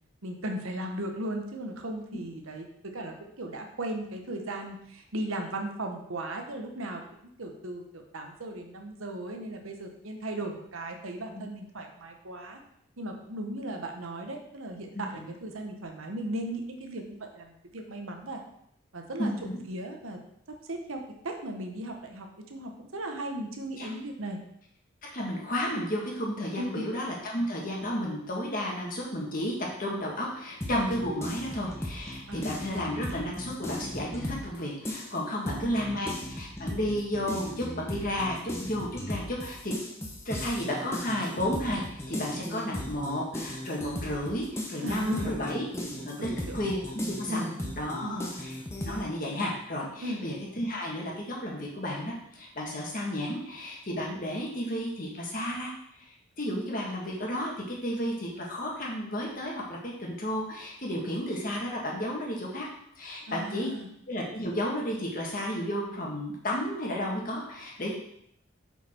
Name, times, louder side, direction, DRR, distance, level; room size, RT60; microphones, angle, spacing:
voice 1, 0.2-2.6 2.9-12.6 13.0-18.4 18.9-19.3 19.6-20.2 20.7-24.4 26.5-26.9 32.3-32.5 35.4-36.1 44.8-45.5 46.2-46.6 47.3-47.7 48.0-48.3 50.0-50.2 63.3-63.9, right 1 dB, 85° right, 3 dB, 1.1 m, -37 dB
voice 2, 14.9-15.3 19.2-19.6 23.8-23.9 25.0-29.5 29.8-39.7 40.2-45.6 46.0-47.5 47.8-48.6 48.8-62.7 63.0-63.7 64.1-67.9, equal, 40° left, -2 dB, 1.6 m, -32 dB
sound 1, 30.6-34.6 34.8-49.0, left 1 dB, 15° left, 0.9 m, -37 dB
6.6 x 5.9 x 4.4 m, 0.73 s
head